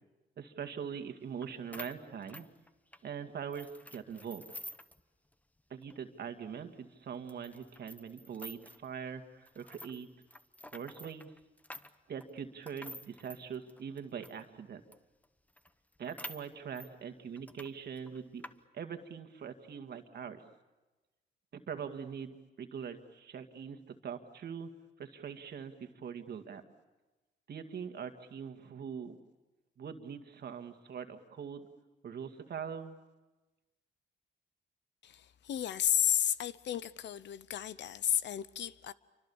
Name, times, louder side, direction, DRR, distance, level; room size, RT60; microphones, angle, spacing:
voice 1, 0.4-2.5 3.0-4.4 5.7-10.1 10.7-11.3 12.1-14.8 16.0-18.5 18.7-20.4 21.5-24.7 25.0-26.6 27.5-29.1 29.8-31.7 32.0-33.0, right 7 dB, 55° right, 2.1 m, -42 dB
sound 1, 1.4-1.5 1.7-3.1 3.5-5.0 5.3-5.4 5.8-5.9 6.5-6.6 7.3-8.9 9.5-14.4 14.9-15.0 15.2-15.3 15.6-16.9 17.4-17.7 18.0-18.5, left 1 dB, 5° left, 1.0 m, -49 dB
voice 2, 35.0-38.9, left 10 dB, 65° left, 0.9 m, -32 dB
28.5 x 25.0 x 7.2 m
cardioid pair, 90°, 20 cm